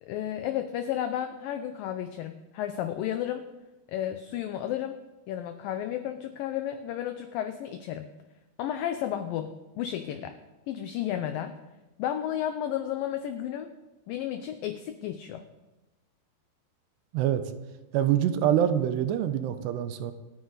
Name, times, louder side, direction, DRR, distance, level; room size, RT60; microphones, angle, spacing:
voice 1, 0.0-3.5 3.9-5.0 5.3-8.1 8.6-10.4 10.7-11.5 12.0-13.7 14.1-15.5, left 11 dB, 80° left, 8 dB, 2.1 m, -32 dB
voice 2, 17.9-20.1, right 10 dB, 90° right, 10 dB, 2.9 m, -25 dB
27.5 x 9.5 x 4.0 m, 1.1 s
omnidirectional pair, 4.8 m